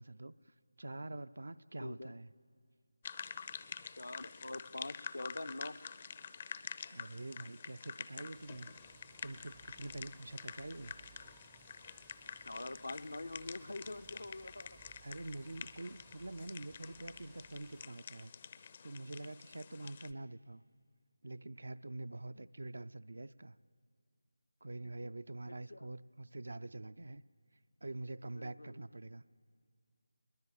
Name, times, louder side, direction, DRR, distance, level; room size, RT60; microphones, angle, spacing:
voice 1, 0.0-2.3 6.9-8.7 9.2-10.9 15.0-18.3 18.8-20.6 21.2-23.6 24.6-27.2 27.8-29.2, right 2 dB, 65° right, 12 dB, 0.5 m, -46 dB
voice 2, 1.8-2.1 4.0-5.8 12.4-14.8 22.3-22.5 25.5-25.9 28.3-28.8, left 2 dB, 75° left, 10 dB, 0.8 m, -45 dB
sound 1, 3.0-20.1, left 6 dB, 35° left, 0.6 m, -48 dB
sound 2, 8.3-17.9, right 10 dB, 10° right, 0.5 m, -64 dB
21.0 x 20.5 x 8.9 m, 2.2 s
figure-of-eight pair, 160°, 0 cm